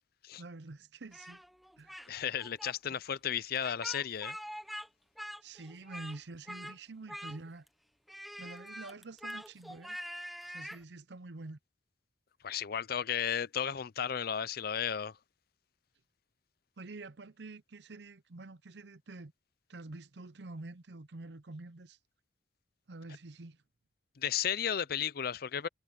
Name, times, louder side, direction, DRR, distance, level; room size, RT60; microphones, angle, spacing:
voice 1, 0.4-1.4 1.8-1.9 2.9-3.0 5.4-7.6 8.4-10.0 10.5-11.6 16.8-19.3 19.7-22.0 22.9-23.6, right 2 dB, 70° right, 0.8 m, -47 dB
Speech, 1.1-2.1 2.4-2.7 3.6-4.9 5.2-6.2 6.5-6.8 7.1-7.7 8.1-10.8, equal, ahead, 1.0 m, -44 dB
voice 2, 2.1-4.4 12.4-15.2 24.2-25.7, left 8 dB, 55° left, 0.5 m, -34 dB
head